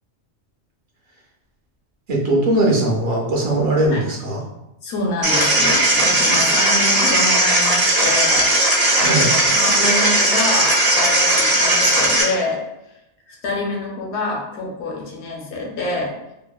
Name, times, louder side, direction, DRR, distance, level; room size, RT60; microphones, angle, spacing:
voice 1, 2.1-4.4 8.9-9.3, right 1 dB, 60° right, -3 dB, 0.8 m, -19 dB
voice 2, 4.8-8.7 9.2-12.6 13.3-16.1, left 2 dB, 70° left, -2 dB, 0.9 m, -26 dB
sound 1, 5.2-12.2, right 1 dB, 35° right, 0.3 m, -17 dB
2.7 x 2.1 x 2.2 m, 0.91 s
omnidirectional pair, 1.2 m